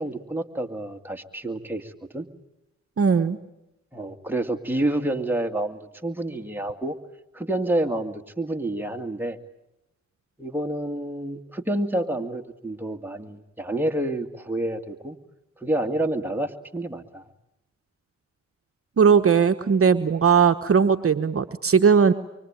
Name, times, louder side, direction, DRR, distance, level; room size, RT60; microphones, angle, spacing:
voice 1, 0.0-2.3 3.9-7.0 7.3-9.4 10.4-15.2 15.6-17.2, right 1 dB, 5° right, 3 dB, 2.2 m, -28 dB
voice 2, 3.0-3.4 19.0-22.1, right 6 dB, 50° right, 7 dB, 1.1 m, -18 dB
25.0 x 24.5 x 9.0 m, 0.90 s
cardioid pair, 60°, 30 cm